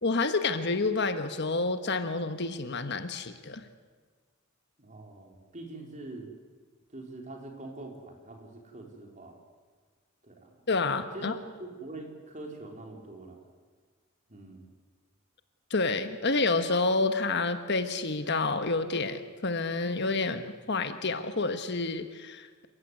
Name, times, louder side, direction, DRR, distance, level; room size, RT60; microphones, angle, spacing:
voice 1, 0.0-3.6 10.7-11.3 15.7-22.7, left 3 dB, 55° left, 9 dB, 1.4 m, -29 dB
voice 2, 4.8-6.3 6.9-9.3 10.2-10.5 11.1-13.4 14.3-14.6, right 2 dB, 35° right, 2 dB, 4.0 m, -44 dB
28.0 x 15.5 x 9.6 m, 1.5 s
head